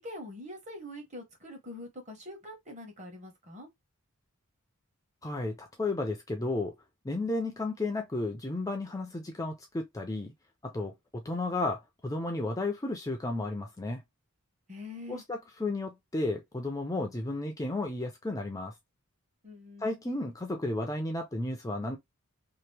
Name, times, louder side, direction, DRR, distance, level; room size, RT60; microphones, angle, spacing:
voice 1, 0.0-3.7 14.7-15.2 19.4-20.0, left 1 dB, 30° right, 1.2 m, -44 dB
voice 2, 5.2-6.7 7.0-10.3 10.6-14.0 15.1-18.7 19.8-22.0, left 2 dB, 15° left, 0.4 m, -33 dB
2.9 x 2.5 x 3.3 m
head